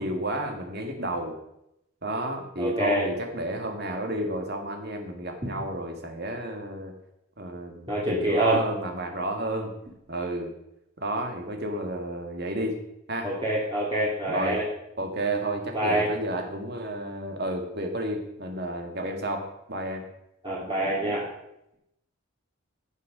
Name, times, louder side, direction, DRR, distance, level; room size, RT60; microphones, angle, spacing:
voice 1, 0.0-1.4 2.0-7.0 7.4-9.7 10.1-10.5 11.0-12.8 13.1-13.3 14.2-14.6 15.0-20.1, right 1 dB, 50° right, 3 dB, 2.0 m, -31 dB
voice 2, 2.6-3.1 7.9-8.6 13.2-14.6 15.7-16.1 20.4-21.2, right 1 dB, 25° right, -7 dB, 2.5 m, -25 dB
16.5 x 6.7 x 5.1 m, 0.84 s
head